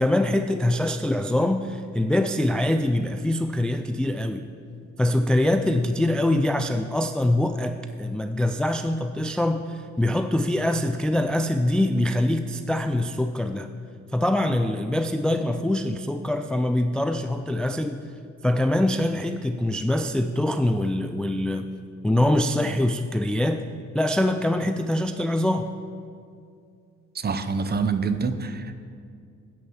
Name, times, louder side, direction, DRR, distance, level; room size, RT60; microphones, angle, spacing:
voice 1, 0.0-4.4 5.0-13.7 14.1-18.0 18.4-21.7 22.0-23.6 23.9-25.7, left 1 dB, 5° left, 8 dB, 0.3 m, -24 dB
voice 2, 27.1-28.7, right 4 dB, 35° right, 10 dB, 0.7 m, -26 dB
10.5 x 6.4 x 7.2 m, 2.3 s
cardioid pair, 90°, 30 cm